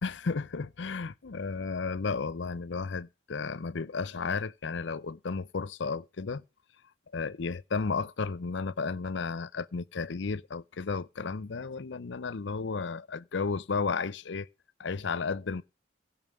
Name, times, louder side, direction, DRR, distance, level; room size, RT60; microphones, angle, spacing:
voice 1, 0.0-6.4 7.1-14.5 14.8-15.6, left 4 dB, 70° left, 0.6 m, -33 dB
16.0 x 5.5 x 6.6 m
head